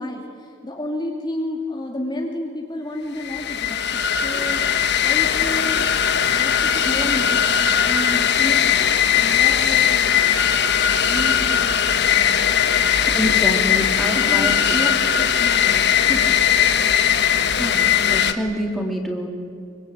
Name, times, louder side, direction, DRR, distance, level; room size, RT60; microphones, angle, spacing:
voice 1, 0.0-4.6 5.0-5.9 6.4-8.8 9.1-10.1 11.1-12.5 14.1-17.2, left 1 dB, 20° left, 0 dB, 2.4 m, -31 dB
sound 1, 3.2-18.3, left 8 dB, 55° left, 1.3 m, -19 dB
voice 2, 13.1-14.6 17.6-19.3, equal, ahead, 0 dB, 3.1 m, -26 dB
25.5 x 25.0 x 8.8 m, 2.3 s
head